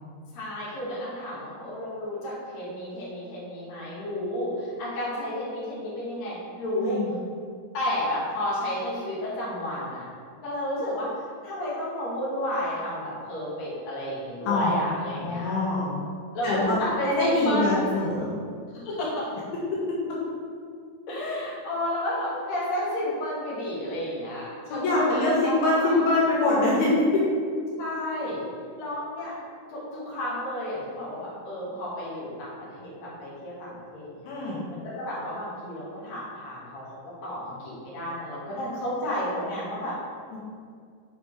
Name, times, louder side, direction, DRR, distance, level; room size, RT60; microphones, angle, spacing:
voice 1, 0.3-7.0 7.7-10.0 10.4-15.5 16.3-17.9 18.7-19.3 21.1-26.1 27.8-28.4 28.8-29.4 29.7-34.3 34.7-37.0 37.2-40.0, left 1 dB, 50° left, -7 dB, 3.0 m, -31 dB
voice 2, 6.8-7.1 14.5-14.7 15.1-15.9 16.4-16.8 17.0-18.3 24.7-27.2 34.3-34.6 40.3-40.4, left 2 dB, 80° left, -6 dB, 3.3 m, -24 dB
7.2 x 5.2 x 4.7 m, 2.2 s
omnidirectional pair, 4.5 m